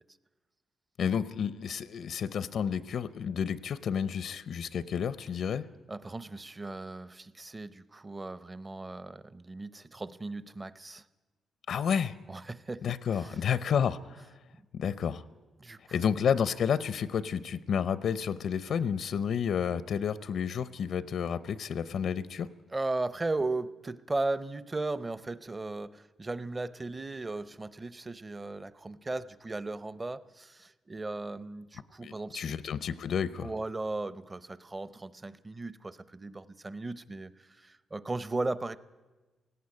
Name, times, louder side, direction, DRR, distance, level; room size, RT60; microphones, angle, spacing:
voice 1, 1.0-5.6 11.7-12.1 12.8-14.3 14.7-15.2 15.9-22.5 32.0-33.5, left 7 dB, 65° left, 16 dB, 0.6 m, -30 dB
voice 2, 5.9-11.1 12.3-13.4 15.6-16.1 22.7-32.5 33.4-38.8, right 2 dB, 20° right, 17 dB, 0.7 m, -36 dB
18.0 x 17.0 x 9.7 m, 1.2 s
cardioid pair, 135°, 0 cm